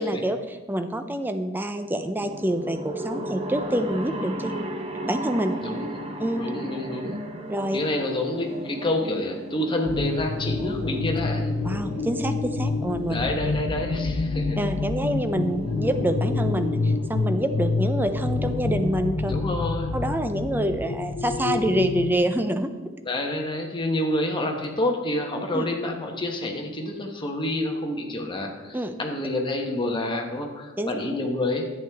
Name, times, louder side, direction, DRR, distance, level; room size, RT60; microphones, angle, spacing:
voice 1, 0.0-4.5 5.1-5.5 6.2-6.4 7.5-7.8 11.6-13.2 14.6-19.3 19.9-22.7 25.5-25.6 28.7-29.0 30.8-30.9, right 1 dB, 10° right, 8 dB, 0.5 m, -26 dB
sound 1, 2.2-19.1, right 1 dB, 30° right, 0.8 m, -36 dB
voice 2, 5.6-6.0 6.3-7.2 7.7-11.5 13.1-14.6 19.3-19.9 23.1-31.7, left 1 dB, 25° left, 2 dB, 1.1 m, -28 dB
sound 2, 9.9-22.2, left 3 dB, 55° left, 0.5 m, -27 dB
10.5 x 8.3 x 3.5 m, 1.3 s
head